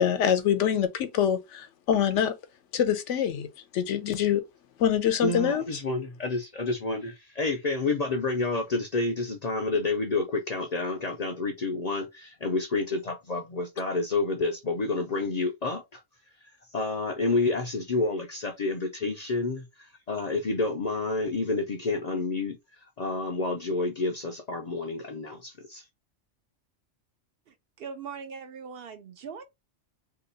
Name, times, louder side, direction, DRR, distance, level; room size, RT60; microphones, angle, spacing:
voice 1, 0.0-2.4 2.7-4.5 4.8-5.8, left 9 dB, 85° left, 0.9 m, -25 dB
voice 2, 5.2-16.0 16.7-19.6 20.1-22.6 23.0-25.8, left 3 dB, 55° left, 0.5 m, -29 dB
voice 3, 27.5-29.4, right 6 dB, 60° right, 0.7 m, -41 dB
2.8 x 2.3 x 3.9 m
omnidirectional pair, 1.2 m